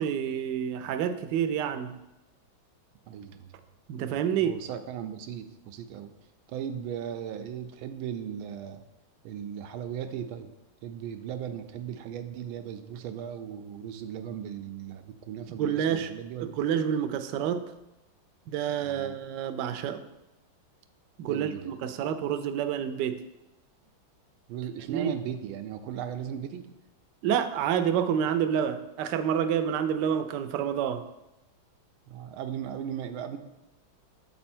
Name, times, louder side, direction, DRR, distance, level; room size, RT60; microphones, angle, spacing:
voice 1, 0.0-2.0 3.9-4.6 15.5-16.1 16.4-17.6 18.5-20.0 21.2-23.2 24.9-25.1 27.2-31.0, right 8 dB, 75° right, 9 dB, 1.1 m, -28 dB
voice 2, 3.1-3.5 4.4-6.1 6.5-8.8 9.2-10.5 10.8-16.6 18.9-19.1 21.3-21.7 24.5-26.7 32.1-33.4, right 9 dB, 90° right, 8 dB, 1.4 m, -37 dB
7.7 x 4.3 x 4.3 m, 0.96 s
omnidirectional pair, 2.2 m